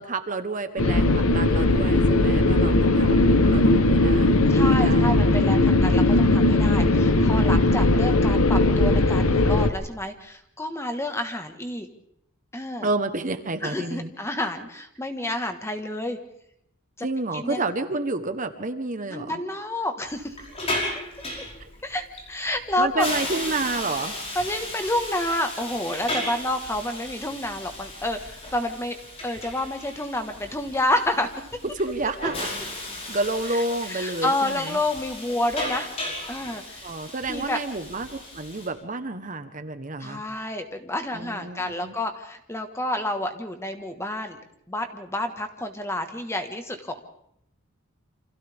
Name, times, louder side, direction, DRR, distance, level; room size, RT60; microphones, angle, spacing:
voice 1, 0.0-5.2 5.6-6.1 12.8-14.1 17.0-19.4 21.6-21.7 22.8-24.1 31.6-32.5 33.1-34.8 36.8-40.2 41.1-41.9, right 2 dB, 35° right, 9 dB, 1.1 m, -30 dB
sound 1, 0.8-9.7, left 2 dB, 75° left, 1.0 m, -19 dB
voice 2, 4.5-11.9 12.5-12.9 13.6-16.2 17.0-17.1 17.3-17.6 19.1-20.4 21.8-23.1 24.3-28.9 29.2-31.3 33.9-35.9 36.3-36.9 37.3-37.6 40.0-44.4 44.7-47.0, left 1 dB, 10° left, 6 dB, 1.5 m, -29 dB
Hiss, 20.1-38.7, left 1 dB, 30° left, 5.4 m, -35 dB
29.0 x 26.0 x 3.6 m, 0.76 s
head